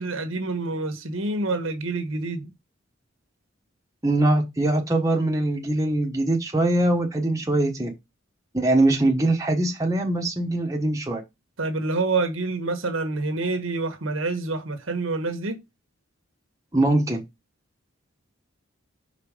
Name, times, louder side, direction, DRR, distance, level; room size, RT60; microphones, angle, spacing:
voice 1, 0.0-2.5 11.6-15.6, right 3 dB, 75° right, 1.3 m, -27 dB
voice 2, 4.0-7.9 8.5-11.2 16.7-17.2, right 2 dB, 15° right, 1.1 m, -22 dB
5.2 x 4.0 x 5.1 m
head